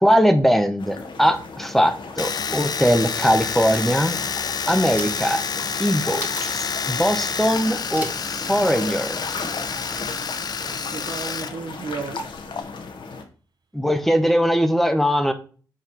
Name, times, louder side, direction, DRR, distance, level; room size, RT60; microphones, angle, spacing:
voice 1, 0.0-4.2 4.7-5.4 5.8-6.3 6.5-8.1 8.3-9.2 13.7-15.3, equal, 5° left, 0.9 m, -20 dB
sound 1, 0.8-13.2, left 4 dB, 70° left, 1.1 m, -36 dB
Domestic sounds home sounds, 2.2-11.5 11.8-12.6, left 6 dB, 50° left, 0.5 m, -28 dB
sound 2, 3.7-11.0, right 1 dB, 20° right, 1.9 m, -42 dB
voice 2, 10.6-12.3, right 4 dB, 55° right, 0.7 m, -34 dB
5.7 x 4.2 x 4.6 m
cardioid pair, 65°, 9 cm